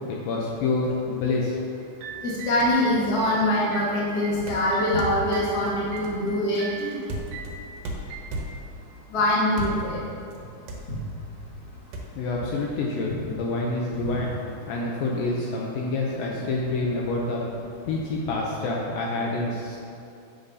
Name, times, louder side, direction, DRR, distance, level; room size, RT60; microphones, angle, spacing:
voice 1, 0.0-1.6 12.2-14.3 14.7-17.4 17.9-19.8, left 3 dB, 75° left, -2 dB, 2.2 m, -27 dB
sound 1, 1.8-5.6 5.9-6.2 6.6-6.9 7.3-7.6 8.1-8.4, right 7 dB, 85° right, 1.8 m, -39 dB
voice 2, 2.2-7.0 9.1-10.0 10.9-11.0, left 1 dB, 40° left, -7 dB, 1.4 m, -24 dB
sound 2, 2.6-2.9 4.5-8.8 9.5-10.0 10.3-10.4 10.7-11.3 11.9-12.0, right 1 dB, 70° right, 2.3 m, -35 dB
10.5 x 7.1 x 2.7 m, 2.6 s
omnidirectional pair, 4.5 m